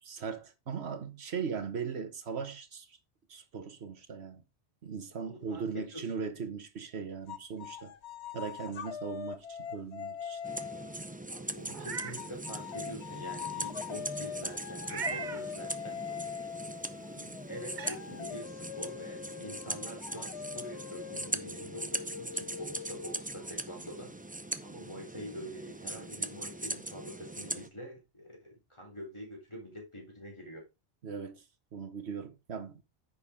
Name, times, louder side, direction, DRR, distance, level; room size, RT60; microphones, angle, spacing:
voice 1, 0.0-3.0 3.3-4.4 4.8-7.9 8.3-10.4 31.0-31.4 31.7-32.8, right 6 dB, 70° right, 1.5 m, -39 dB
voice 2, 5.2-6.0 11.3-16.1 17.1-24.2 24.6-30.7, equal, 25° left, 3.8 m, -46 dB
sound 1, 7.3-11.2 12.2-23.5, left 7 dB, 80° left, 1.1 m, -42 dB
sound 2, 10.4-27.7, right 1 dB, 10° right, 0.5 m, -40 dB
Meow, 11.6-12.2 12.7-12.8 14.8-15.4 17.0-17.1 17.7-18.0, right 5 dB, 50° right, 0.9 m, -38 dB
9.8 x 6.6 x 3.6 m
omnidirectional pair, 1.1 m